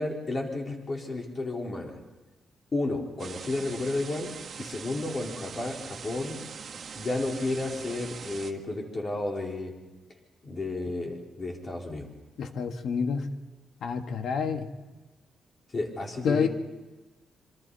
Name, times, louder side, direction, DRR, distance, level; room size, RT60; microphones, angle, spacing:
voice 1, 0.0-2.0 2.7-4.3 4.6-6.4 6.9-9.7 10.4-12.1 15.7-16.5, left 2 dB, 30° left, -1 dB, 4.3 m, -32 dB
sound 1, 3.2-8.5, right 6 dB, 50° right, 1.6 m, -42 dB
voice 2, 12.4-13.3 13.8-14.7 16.2-16.5, left 6 dB, 65° left, 6 dB, 1.8 m, -28 dB
26.5 x 25.0 x 4.2 m, 1.2 s
cardioid pair, 140°, 0 cm